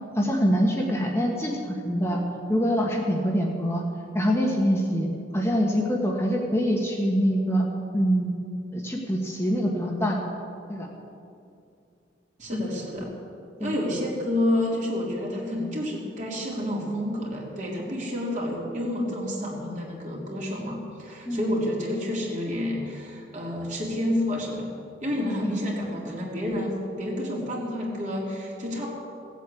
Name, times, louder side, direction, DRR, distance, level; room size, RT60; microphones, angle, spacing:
voice 1, 0.1-2.2 2.5-3.8 4.1-5.1 5.3-7.7 7.9-8.3 8.7-10.2 10.7-10.9 12.5-12.6 13.6-13.7 21.2-21.5 25.4-25.5, equal, 15° left, -2 dB, 1.6 m, -24 dB
voice 2, 12.4-13.1 13.6-24.7 25.0-28.9, left 1 dB, 40° right, -3 dB, 3.2 m, -29 dB
17.5 x 8.2 x 8.5 m, 2.5 s
head